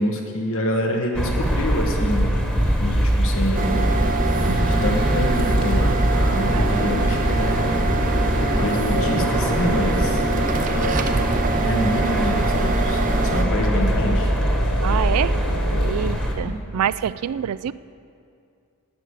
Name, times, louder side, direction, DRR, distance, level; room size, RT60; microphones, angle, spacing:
voice 1, 0.0-4.0 4.8-7.8 8.6-10.2 11.6-14.3 16.4-16.9, equal, 65° left, 2 dB, 1.5 m, -27 dB
sound 1, 1.1-16.3, equal, 5° left, 1.3 m, -22 dB
sound 2, 3.3-16.2, left 2 dB, 85° left, 1.1 m, -30 dB
sound 3, 3.5-13.4, right 4 dB, 40° right, 0.6 m, -25 dB
voice 2, 6.5-7.1 14.8-15.4 15.8-17.7, right 9 dB, 90° right, 18 dB, 0.4 m, -27 dB
12.0 x 9.1 x 6.6 m, 2.4 s
head